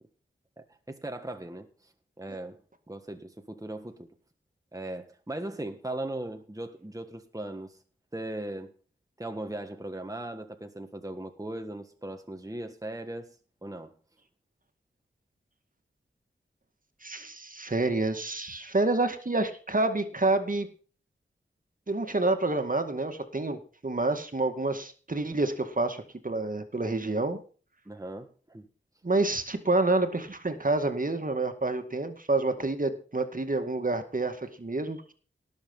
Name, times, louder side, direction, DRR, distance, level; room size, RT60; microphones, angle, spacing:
voice 1, 0.6-2.6 2.9-4.1 4.7-7.8 8.1-8.7 9.2-13.3 13.6-13.9 27.8-28.7, right 1 dB, 15° right, 1.6 m, -38 dB
voice 2, 17.0-20.7 21.9-27.4 29.0-35.1, right 2 dB, 40° right, 2.1 m, -28 dB
18.0 x 7.2 x 5.5 m
cardioid pair, 45°, 21 cm